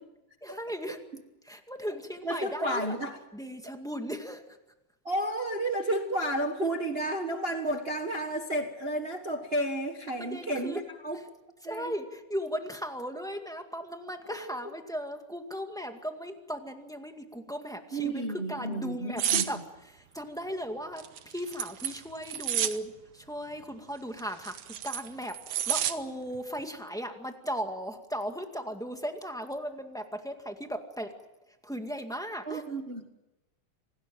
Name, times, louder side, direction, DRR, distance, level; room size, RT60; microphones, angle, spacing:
voice 1, 0.4-1.0 1.4-3.0 3.3-4.4 10.2-10.8 11.1-11.2 11.6-19.6 19.8-31.1 31.6-32.6, equal, ahead, 4 dB, 1.2 m, -37 dB
voice 2, 2.2-3.2 5.0-11.2 11.6-11.9 14.3-14.5 17.9-19.4 32.5-33.2, right 1 dB, 45° right, 5 dB, 0.8 m, -32 dB
sound 1, 19.2-19.5 21.0-22.8 24.2-25.9 26.3-26.6, right 10 dB, 65° right, 1.9 m, -30 dB
27.0 x 19.0 x 7.7 m, 0.96 s
omnidirectional pair, 3.5 m